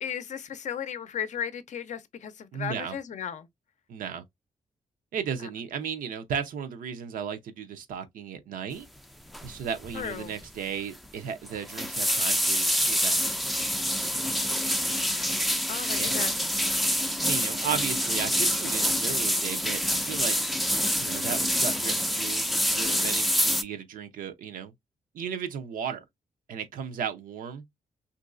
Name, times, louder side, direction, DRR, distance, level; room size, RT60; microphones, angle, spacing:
voice 1, 0.0-3.5 9.9-10.4 15.0-15.4 15.7-16.4, left 8 dB, 60° left, 0.5 m, -35 dB
voice 2, 2.5-3.0 3.9-4.2 5.1-8.9 9.4-13.2 16.0-16.1 17.2-20.4 21.0-24.7 25.1-26.0 26.5-27.6, right 7 dB, 80° right, 0.6 m, -35 dB
sound 1, 9.3-9.6 9.8-10.2 10.4-10.5 11.5-23.6, equal, ahead, 0.4 m, -26 dB
3.0 x 2.6 x 2.4 m
cardioid pair, 85°, 14 cm